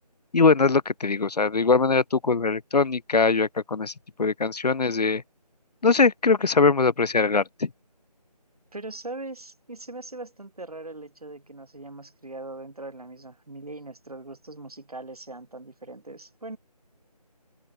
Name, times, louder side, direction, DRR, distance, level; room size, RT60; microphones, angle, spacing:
voice 1, 0.3-3.9 4.2-5.2 5.8-7.7, left 4 dB, 75° left, 0.6 m, -21 dB
voice 2, 8.7-16.6, right 2 dB, 60° right, 6.1 m, -40 dB
figure-of-eight pair, 165°, 21 cm